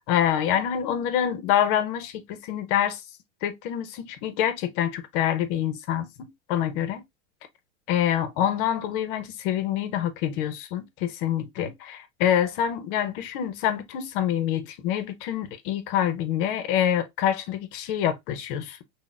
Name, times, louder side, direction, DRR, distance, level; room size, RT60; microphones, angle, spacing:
voice 1, 0.1-3.0 3.4-7.0 7.9-18.8, left 10 dB, 45° left, 0.6 m, -26 dB
3.6 x 2.1 x 2.3 m
supercardioid pair, 125°, 36 cm